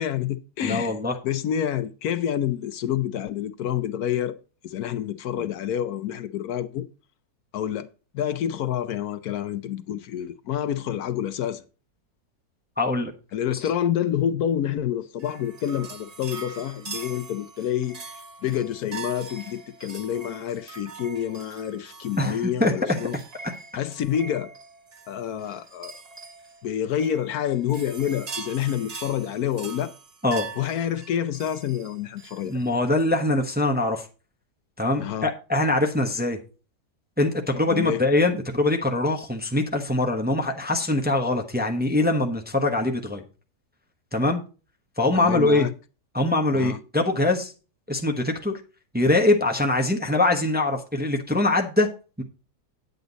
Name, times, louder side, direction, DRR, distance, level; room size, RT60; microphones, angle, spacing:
voice 1, 0.0-0.9 1.2-4.4 4.6-6.8 7.5-7.9 8.1-11.6 13.3-18.1 18.4-23.2 23.7-24.5 25.1-26.0 26.6-29.9 30.6-32.6 35.0-35.3 37.7-38.0 45.1-45.7 46.5-46.8, left 10 dB, 70° left, 1.1 m, -28 dB
voice 2, 0.6-1.1 12.8-13.1 13.5-13.6 22.2-23.0 30.2-30.5 32.5-34.0 34.8-36.4 37.2-43.2 44.1-44.4 45.0-45.7 46.1-47.5 47.9-48.5 48.9-51.9 52.2-52.3, left 2 dB, 5° right, 0.9 m, -23 dB
sound 1, 15.2-32.7, right 4 dB, 35° right, 0.7 m, -42 dB
9.7 x 8.1 x 4.0 m
omnidirectional pair, 1.7 m